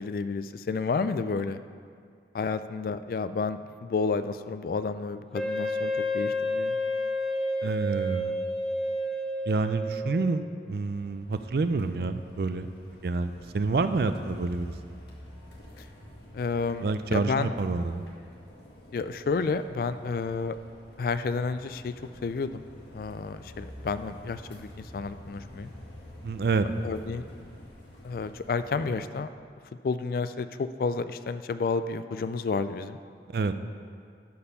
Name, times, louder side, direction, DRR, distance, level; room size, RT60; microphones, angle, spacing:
voice 1, 0.0-1.6 2.3-6.8 16.3-17.5 18.9-20.5 21.0-21.9 22.2-22.6 22.9-25.7 26.8-27.2 28.0-29.3 29.8-33.0, left 4 dB, 55° left, 12 dB, 0.3 m, -30 dB
Wind instrument woodwind instrument, 5.3-10.4, left 1 dB, ahead, 0.7 m, -30 dB
voice 2, 7.6-8.4 9.5-14.7 16.8-18.0 26.2-26.7 33.3-33.6, right 3 dB, 55° right, 10 dB, 0.4 m, -28 dB
sound 1, 10.7-29.0, equal, 75° left, 1.6 m, -48 dB
12.0 x 4.4 x 5.6 m, 2.2 s
head